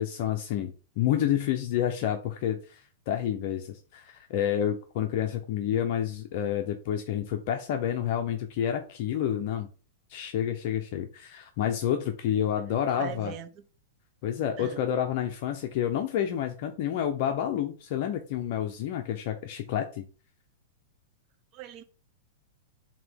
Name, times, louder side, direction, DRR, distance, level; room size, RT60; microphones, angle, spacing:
voice 1, 0.0-9.7 10.1-13.3 14.2-20.0, left 10 dB, 50° left, 0.9 m, -29 dB
voice 2, 13.0-13.6 14.6-14.8 21.5-21.8, right 10 dB, 35° right, 0.9 m, -40 dB
7.3 x 3.0 x 5.4 m
hypercardioid pair, 145°, 0 cm